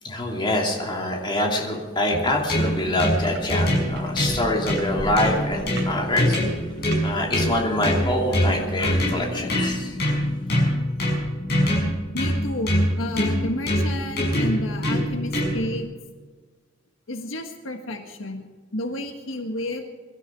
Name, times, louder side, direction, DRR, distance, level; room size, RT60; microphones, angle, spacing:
voice 1, 0.0-6.4 7.0-9.9, left 1 dB, 25° left, -1 dB, 2.8 m, -25 dB
sound 1, 2.1-15.8, equal, 50° left, 6.3 m, -25 dB
sound 2, 2.6-2.7 3.0-3.4 4.0-7.0 7.7-7.8, right 2 dB, 55° right, 3.1 m, -37 dB
voice 2, 12.1-15.9 17.1-18.5 18.7-19.8, left 1 dB, 80° left, 5 dB, 1.6 m, -31 dB
23.0 x 13.0 x 4.7 m, 1.4 s
head